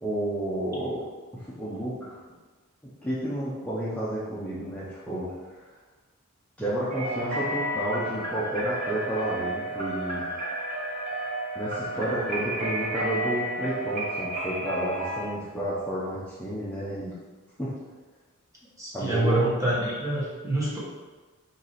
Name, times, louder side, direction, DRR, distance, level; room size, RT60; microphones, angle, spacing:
voice 1, 0.0-1.0 1.3-2.2 3.0-5.3 6.6-10.2 11.5-17.1 17.6-17.7 18.9-19.5, right 1 dB, 5° left, -10 dB, 0.7 m, -31 dB
sound 1, 6.9-15.2, right 1 dB, 35° right, 1.0 m, -31 dB
voice 2, 18.8-20.8, right 1 dB, 15° right, -7 dB, 1.2 m, -26 dB
4.7 x 2.7 x 4.1 m, 1.3 s
head